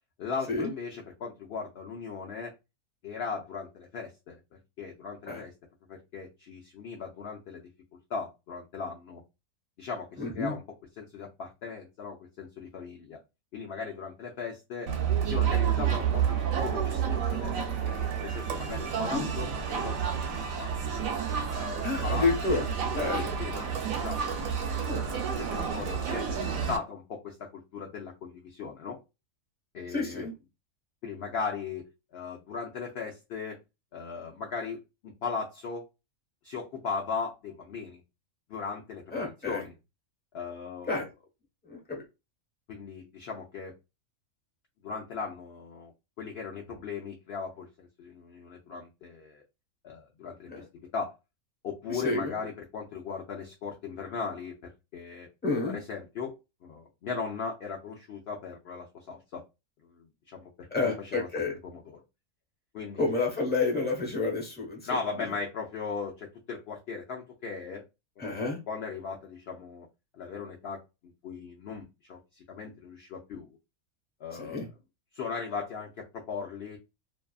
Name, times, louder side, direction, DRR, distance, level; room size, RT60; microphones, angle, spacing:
voice 1, 0.2-2.5 3.0-5.5 5.9-7.7 8.1-9.2 9.8-10.6 11.0-13.2 13.5-14.9 15.2-17.9 18.2-20.1 20.6-21.0 21.5-22.6 23.1-24.4 24.6-26.3 26.7-29.0 29.7-30.3 31.0-31.8 32.1-33.6 33.9-35.9 36.4-38.0 38.5-39.7 40.3-41.0 42.7-43.7 44.8-45.9 46.2-49.4 49.8-51.1 51.6-55.3 55.7-59.4 59.9-61.3 61.6-62.0 62.7-63.1 64.9-67.8 68.2-69.9 70.1-73.6 74.2-74.7 75.1-76.8, left 5 dB, 65° left, 0 dB, 0.6 m, -38 dB
voice 2, 10.2-10.5 19.1-19.3 21.8-23.2 24.7-25.1 29.9-30.3 39.1-39.7 40.8-41.1 41.6-42.0 50.5-50.6 51.9-52.3 55.4-55.8 60.7-61.5 63.0-64.9 68.2-68.6 74.3-74.7, left 3 dB, 10° left, -1 dB, 0.9 m, -30 dB
Crowd, 14.9-26.8, right 7 dB, 75° right, 1.0 m, -30 dB
2.6 x 2.4 x 2.3 m, 0.25 s
omnidirectional pair, 1.5 m